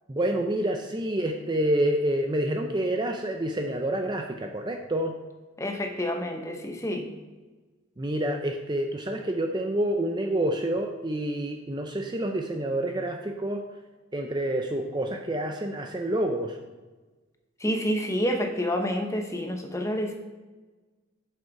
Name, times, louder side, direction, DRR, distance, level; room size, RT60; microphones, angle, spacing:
voice 1, 0.1-5.1 8.0-13.6 14.1-16.6, right 1 dB, 20° right, 4 dB, 0.5 m, -28 dB
voice 2, 5.6-7.1 17.6-20.1, equal, 15° left, 4 dB, 0.8 m, -28 dB
7.5 x 6.5 x 4.7 m, 1.3 s
head